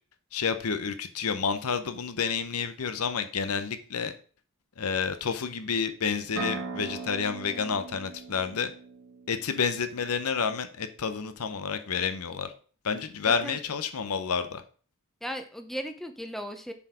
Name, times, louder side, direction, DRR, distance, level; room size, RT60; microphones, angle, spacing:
voice 1, 0.3-4.1 4.8-8.7 9.3-12.5 12.8-14.6, left 6 dB, 80° left, 10 dB, 0.7 m, -29 dB
sound 1, 6.4-10.1, right 4 dB, 75° right, 1.9 m, -39 dB
voice 2, 13.2-13.6 15.2-16.7, equal, ahead, 6 dB, 0.7 m, -36 dB
7.1 x 4.7 x 4.9 m, 0.42 s
head